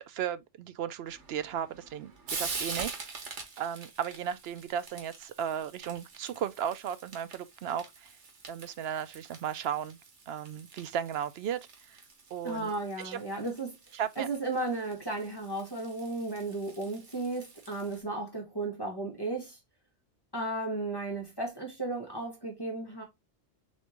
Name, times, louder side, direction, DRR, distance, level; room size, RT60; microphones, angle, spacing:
voice 1, 0.0-8.1 8.5-10.0 10.3-12.0 12.3-12.7 13.0-13.2 13.9-14.3, right 9 dB, 70° right, 0.8 m, -35 dB
Frying (food), 1.0-18.0, right 4 dB, 90° right, 1.5 m, -45 dB
voice 2, 12.4-13.8 14.2-19.6 20.3-23.0, right 2 dB, 20° left, 1.3 m, -34 dB
4.3 x 3.5 x 3.0 m
omnidirectional pair, 1.2 m